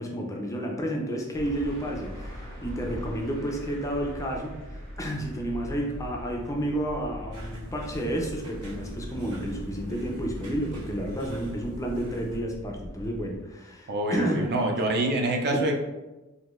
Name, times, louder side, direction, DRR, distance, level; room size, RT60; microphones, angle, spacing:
voice 1, 0.0-4.5 5.0-14.5, right 1 dB, 15° left, 0 dB, 0.4 m, -31 dB
sound 1, 1.3-13.4, equal, 65° right, 1.3 m, -41 dB
sound 2, 7.3-12.4, right 1 dB, 85° right, 0.9 m, -43 dB
voice 2, 13.9-15.7, right 1 dB, 45° right, 3 dB, 0.4 m, -26 dB
3.6 x 2.6 x 2.4 m, 1.1 s
head